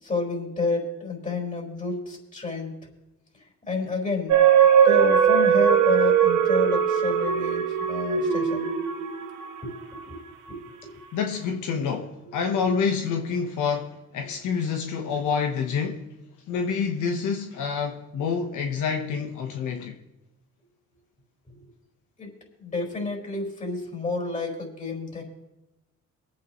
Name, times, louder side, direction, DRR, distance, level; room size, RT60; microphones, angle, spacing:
voice 1, 0.0-2.7 3.6-4.4 4.8-7.6 7.9-8.7 10.0-10.2 10.5-10.9 22.2-25.2, left 3 dB, 25° left, 4.8 m, -30 dB
sound 1, 4.3-10.0 10.5-10.6, right 8 dB, 85° right, 1.3 m, -20 dB
voice 2, 11.1-16.1 16.5-20.0, left 6 dB, 85° left, 1.1 m, -27 dB
24.5 x 8.7 x 3.1 m
cardioid pair, 90°, 30 cm